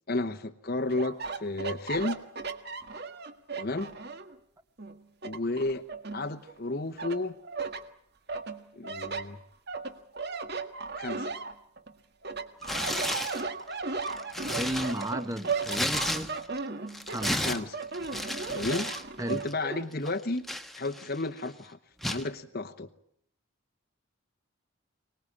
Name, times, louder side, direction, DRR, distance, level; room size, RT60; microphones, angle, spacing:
voice 1, 0.1-2.2 3.6-3.9 5.2-5.8 6.1-7.3 8.7-9.4 10.9-11.3 17.4-17.8 18.5-18.9 19.3-20.4 20.7-21.8 22.1-22.9, left 2 dB, 45° left, 6 dB, 1.0 m, -32 dB
sound 1, 0.9-4.4 4.8-6.6 7.0-7.8 8.3-11.9 12.2-19.8, right 4 dB, 50° right, 1.7 m, -36 dB
Tearing, 12.6-13.4 13.9-16.6 16.9-19.0 19.3-19.5 20.0-21.2 22.0-22.3, left 1 dB, ahead, 1.3 m, -33 dB
voice 2, 14.6-16.3 17.1-17.4 19.2-19.4, right 1 dB, 15° right, 10 dB, 1.3 m, -34 dB
24.5 x 19.5 x 8.6 m, 0.70 s
head